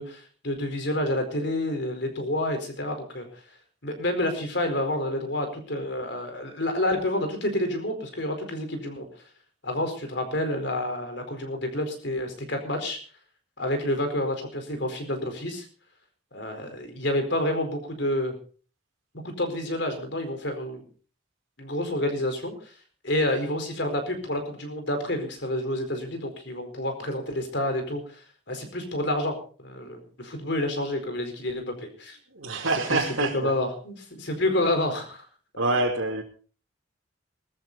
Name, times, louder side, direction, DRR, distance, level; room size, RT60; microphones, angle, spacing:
voice 1, 0.0-3.4 3.8-9.1 9.6-13.0 13.6-15.7 16.3-18.4 19.2-20.8 21.6-22.7 23.0-32.2 32.9-35.3, left 1 dB, 55° left, 6 dB, 4.5 m, -29 dB
voice 2, 32.3-33.6 35.6-36.2, right 2 dB, 85° right, -4 dB, 2.9 m, -26 dB
20.0 x 13.5 x 4.1 m, 0.41 s
head